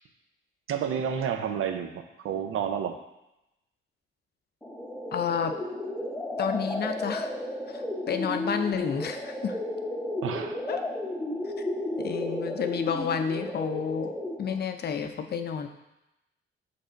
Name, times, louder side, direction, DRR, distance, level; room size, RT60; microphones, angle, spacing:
voice 1, 0.7-3.0 10.2-10.6, right 8 dB, 80° right, 6 dB, 0.6 m, -30 dB
sound 1, 4.6-14.6, left 1 dB, 5° left, 0.7 m, -33 dB
voice 2, 5.1-5.5 6.4-7.3 7.7-9.6 10.7-10.8 12.0-15.7, left 7 dB, 50° left, 7 dB, 0.5 m, -30 dB
6.7 x 3.5 x 5.1 m, 0.92 s
wide cardioid pair, 145°, 21 cm